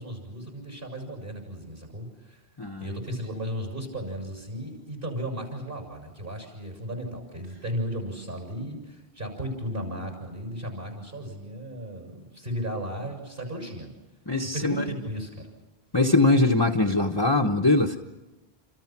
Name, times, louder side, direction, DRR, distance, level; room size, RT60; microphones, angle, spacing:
voice 1, 0.0-2.4 2.8-13.9 14.5-15.5, equal, 60° right, 4 dB, 7.2 m, -35 dB
voice 2, 2.6-3.0 14.3-14.9 15.9-18.0, left 2 dB, 25° left, 1 dB, 1.2 m, -22 dB
28.5 x 27.5 x 6.1 m, 1.1 s
omnidirectional pair, 1.0 m